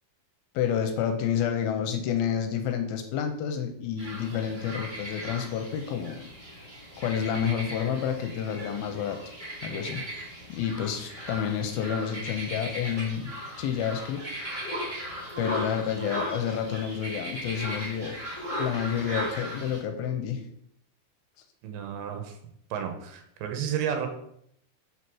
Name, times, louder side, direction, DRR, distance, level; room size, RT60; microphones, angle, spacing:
voice 1, 0.5-6.3 7.0-9.2 9.6-10.0 10.5-14.2 15.4-18.2 18.6-20.4, left 8 dB, 80° left, 5 dB, 2.4 m, -29 dB
sound 1, 4.0-19.8, equal, 30° right, 0.9 m, -37 dB
voice 2, 21.6-22.4 22.7-24.1, right 8 dB, 80° right, 5 dB, 3.1 m, -32 dB
6.6 x 4.2 x 6.1 m, 0.72 s
omnidirectional pair, 4.6 m